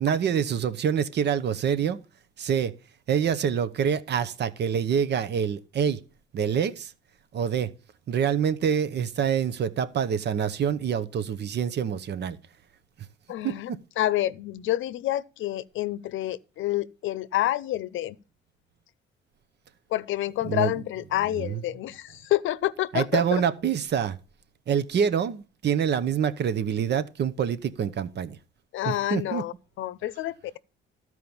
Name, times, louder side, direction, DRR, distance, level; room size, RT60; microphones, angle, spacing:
voice 1, 0.0-2.0 2.4-2.7 3.1-6.0 6.3-6.9 7.3-7.7 8.1-12.4 13.4-13.8 20.5-20.7 21.4-21.6 22.9-24.2 24.7-28.4 28.8-29.4, right 8 dB, 60° right, 0.9 m, -26 dB
voice 2, 13.3-18.2 19.9-23.4 28.7-30.6, left 14 dB, 80° left, 0.6 m, -28 dB
13.0 x 4.7 x 7.0 m
cardioid pair, 90°, 20 cm